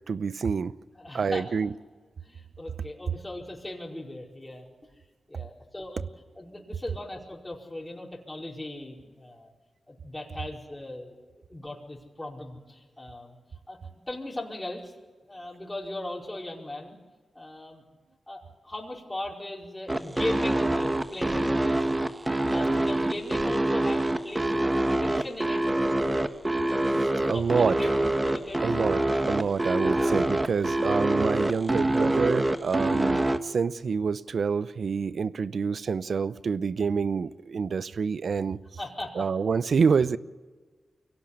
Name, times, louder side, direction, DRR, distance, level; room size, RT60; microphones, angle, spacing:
voice 1, 0.0-0.8 1.1-1.8 26.9-27.9 28.6-38.8 39.1-40.2, right 5 dB, 70° right, 0.7 m, -27 dB
voice 2, 0.9-1.5 2.2-4.6 5.3-6.0 6.3-9.5 9.9-11.1 11.5-13.4 13.7-13.8 14.1-14.9 15.3-17.0 17.3-17.8 18.3-21.8 22.5-25.6 26.9-27.9 28.2-28.7 38.8-39.3, left 1 dB, 20° left, 5.0 m, -38 dB
sound 1, 19.9-33.4, right 1 dB, 20° right, 1.5 m, -25 dB
23.5 x 17.5 x 8.7 m
cardioid pair, 55°, 0 cm